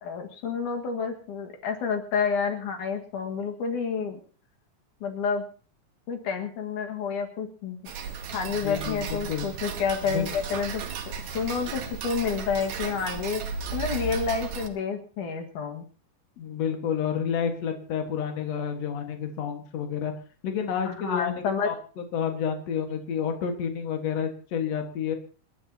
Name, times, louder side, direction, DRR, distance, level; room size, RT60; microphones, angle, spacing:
voice 1, 0.0-4.2 5.0-5.4 6.1-7.8 8.3-10.8 11.3-13.4 13.7-15.8 20.9-21.7, left 6 dB, 85° left, 4 dB, 3.3 m, -29 dB
Tick-tock, 7.9-14.7, right 6 dB, 70° right, 2.7 m, -35 dB
voice 2, 8.5-9.5 10.1-10.3 16.4-20.1 20.4-25.2, left 7 dB, 60° left, 5 dB, 2.7 m, -30 dB
27.5 x 11.5 x 2.8 m, 0.40 s
omnidirectional pair, 3.5 m